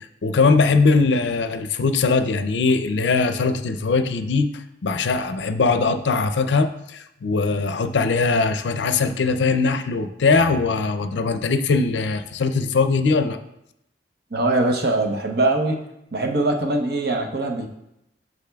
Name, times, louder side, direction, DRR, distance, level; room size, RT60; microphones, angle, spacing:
voice 1, 0.0-13.4, left 4 dB, 80° left, 9 dB, 0.5 m, -21 dB
voice 2, 14.3-15.8 16.1-17.7, right 2 dB, 60° right, 3 dB, 0.8 m, -22 dB
8.3 x 6.2 x 2.3 m, 0.83 s
head